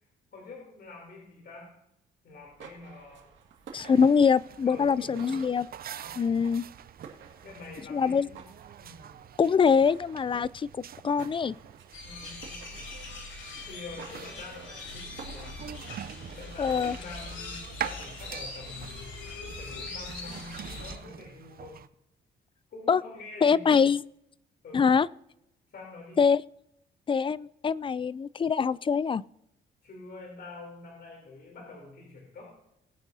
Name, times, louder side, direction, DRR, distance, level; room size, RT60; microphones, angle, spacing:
voice 1, 0.3-1.7 2.2-3.3 4.6-5.5 6.0-6.4 7.4-8.5 8.8-9.2 12.0-12.9 13.7-15.8 16.0-19.1 19.6-21.8 22.7-23.8 24.6-24.9 25.7-26.2 29.8-32.6, left 3 dB, 55° left, -1 dB, 3.4 m, -46 dB
sound 1, 2.3-19.7, right 6 dB, 70° right, 2.1 m, -52 dB
voice 2, 3.7-5.7 6.2-6.6 7.9-8.3 9.4-10.7 11.0-11.5 16.6-17.0 22.9-23.0 23.4-24.0 24.7-25.1 26.2-26.4 27.1-29.2, left 6 dB, 25° left, 21 dB, 0.3 m, -24 dB
sound 2, 3.8-21.9, right 9 dB, 50° right, 0.5 m, -45 dB
sound 3, 11.9-21.0, left 3 dB, 85° left, 5.4 m, -41 dB
20.0 x 8.8 x 2.7 m, 0.82 s
cardioid pair, 90°, 20 cm